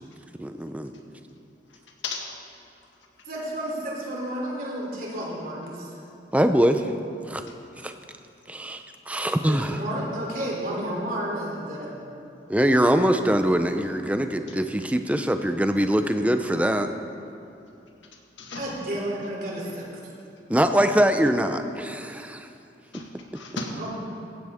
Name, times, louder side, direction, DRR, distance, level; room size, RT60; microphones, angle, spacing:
voice 1, 0.4-0.9 6.3-6.9 7.3-7.4 7.8-7.9 8.5-9.8 12.5-16.9 20.5-22.5, right 1 dB, 10° right, 7 dB, 0.5 m, -23 dB
voice 2, 2.0-2.4 7.5-7.9 18.1-18.7 22.9-23.9, left 3 dB, 85° left, 1 dB, 1.9 m, -36 dB
voice 3, 3.2-6.0 9.5-11.9 18.5-19.9 23.8-24.0, right 1 dB, 50° right, -3 dB, 3.3 m, -31 dB
16.0 x 16.0 x 3.6 m, 2.6 s
head